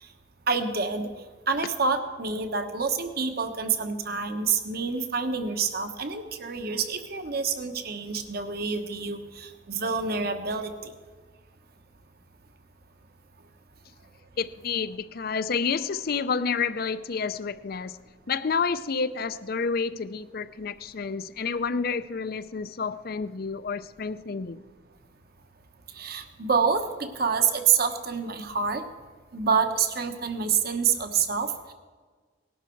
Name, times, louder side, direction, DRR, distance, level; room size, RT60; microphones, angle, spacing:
voice 1, 0.5-1.1 1.5-10.9 26.0-26.8 27.2-28.8 29.3-31.7, right 5 dB, 60° right, 1.3 m, -27 dB
voice 2, 14.4-18.0 18.3-24.6, left 5 dB, 55° left, 0.5 m, -29 dB
19.0 x 11.5 x 4.6 m
head